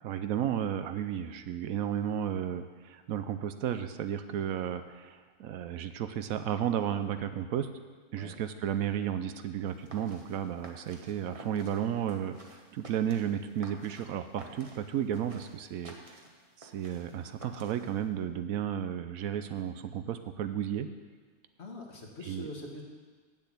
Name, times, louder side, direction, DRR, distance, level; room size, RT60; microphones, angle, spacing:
voice 1, 0.0-7.7 8.1-12.4 12.7-15.9 16.6-20.9 22.3-22.5, right 9 dB, 75° right, 10 dB, 1.0 m, -33 dB
sound 1, 9.7-18.1, right 2 dB, 25° right, 1.0 m, -52 dB
voice 2, 21.6-22.8, left 1 dB, 50° left, 1 dB, 1.6 m, -43 dB
7.9 x 7.2 x 8.3 m, 1.4 s
omnidirectional pair, 1.5 m